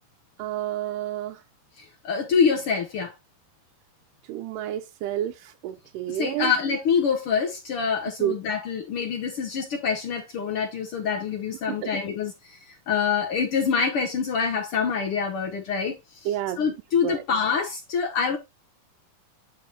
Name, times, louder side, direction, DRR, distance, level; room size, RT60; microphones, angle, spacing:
voice 1, 0.4-1.4 4.3-6.5 8.2-8.3 11.7-11.9 16.3-16.6 17.0-17.2, right 12 dB, 90° right, 2.2 m, -29 dB
voice 2, 1.8-3.1 6.1-16.0 16.2-18.4, left 6 dB, 70° left, 1.3 m, -26 dB
9.3 x 4.7 x 2.8 m
omnidirectional pair, 3.7 m